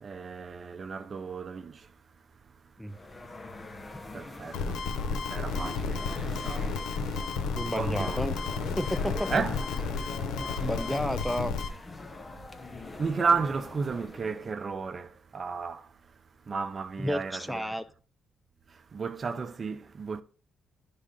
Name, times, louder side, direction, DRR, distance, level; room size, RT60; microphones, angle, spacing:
voice 1, 0.0-1.9 4.1-6.1 6.4-6.8 7.7-8.2 9.3-9.6 13.0-15.9 16.5-17.6 18.9-20.2, right 5 dB, 40° right, 0.7 m, -33 dB
sound 1, 2.9-14.5, left 2 dB, 25° left, 0.9 m, -43 dB
sound 2, 4.5-11.7, left 4 dB, 85° left, 1.1 m, -32 dB
voice 2, 7.5-8.3 8.8-9.4 10.4-11.5 17.0-17.8, left 1 dB, 5° left, 0.4 m, -31 dB
11.5 x 3.8 x 5.4 m
cardioid pair, 90°, 0 cm